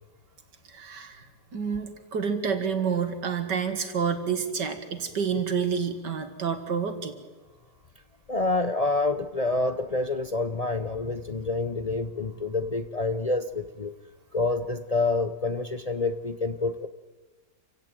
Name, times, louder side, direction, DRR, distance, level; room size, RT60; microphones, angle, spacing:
voice 1, 0.7-1.3 1.5-7.2, right 6 dB, 90° right, 8 dB, 2.5 m, -29 dB
voice 2, 8.3-13.9 14.3-16.9, left 3 dB, 45° left, 9 dB, 0.4 m, -27 dB
28.0 x 16.0 x 9.1 m, 1.3 s
omnidirectional pair, 1.8 m